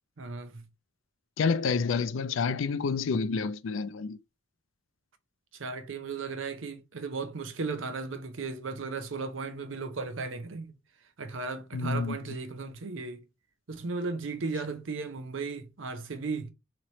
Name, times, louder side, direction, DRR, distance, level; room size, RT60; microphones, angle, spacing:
voice 1, 0.2-0.6 5.5-10.7 11.2-13.2 13.7-16.5, right 4 dB, 75° right, 0.7 m, -36 dB
voice 2, 1.4-4.2 11.7-12.2, left 5 dB, 75° left, 0.4 m, -28 dB
3.2 x 3.0 x 3.9 m
head